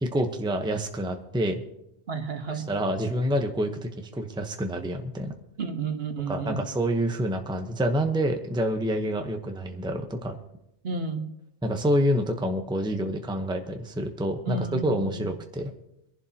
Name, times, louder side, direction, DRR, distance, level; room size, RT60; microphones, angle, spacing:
voice 1, 0.0-1.6 2.5-5.3 6.3-10.4 11.6-15.7, equal, 5° right, 4 dB, 0.8 m, -27 dB
voice 2, 2.1-2.7 5.6-6.6 10.8-11.3 14.5-15.3, right 4 dB, 60° right, 6 dB, 1.4 m, -32 dB
23.0 x 11.0 x 2.9 m, 0.84 s
omnidirectional pair, 1.2 m